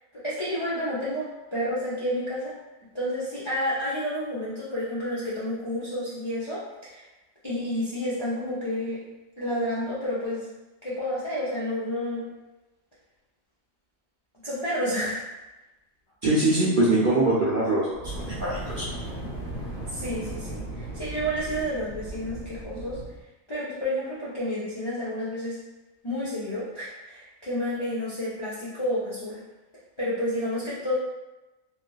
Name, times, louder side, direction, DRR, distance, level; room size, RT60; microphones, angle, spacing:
voice 1, 0.2-2.6 2.9-7.1 7.4-9.0 9.4-10.5 10.8-12.3 14.4-15.2 19.9-23.0 23.5-25.6 26.0-29.4 30.0-30.9, equal, 40° left, -9 dB, 0.4 m, -30 dB
voice 2, 16.2-17.9 18.3-18.9, right 2 dB, 55° right, -8 dB, 0.6 m, -22 dB
Fire, 17.9-23.2, right 1 dB, 55° left, 1.3 m, -36 dB
3.0 x 2.4 x 2.2 m, 1.0 s
omnidirectional pair, 1.4 m